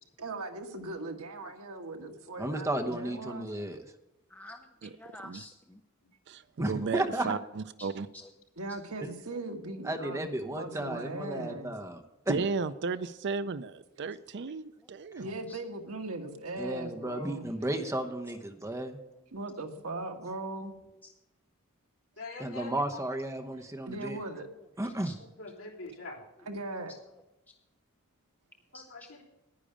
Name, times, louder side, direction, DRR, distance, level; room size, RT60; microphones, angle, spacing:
voice 1, 0.2-3.5 8.6-11.7 15.2-17.5 19.3-20.7 23.9-24.5 26.5-27.0, right 2 dB, 80° right, 1.4 m, -39 dB
voice 2, 2.4-3.8 6.6-7.3 9.0-9.1 9.8-12.4 16.6-19.0 22.4-24.2 24.8-25.1, right 1 dB, 15° right, 0.9 m, -33 dB
voice 3, 4.3-5.8 7.8-7.9 8.2-8.3 10.7-10.8 15.5-15.6 16.5-16.6 21.0-21.1 25.0-25.1 28.7-28.9, left 1 dB, 5° left, 0.5 m, -49 dB
voice 4, 6.3-8.1 12.3-15.4, right 4 dB, 50° right, 0.5 m, -34 dB
voice 5, 22.2-23.0 25.2-26.3 28.7-29.2, left 2 dB, 65° left, 3.5 m, -44 dB
10.5 x 10.0 x 5.0 m
head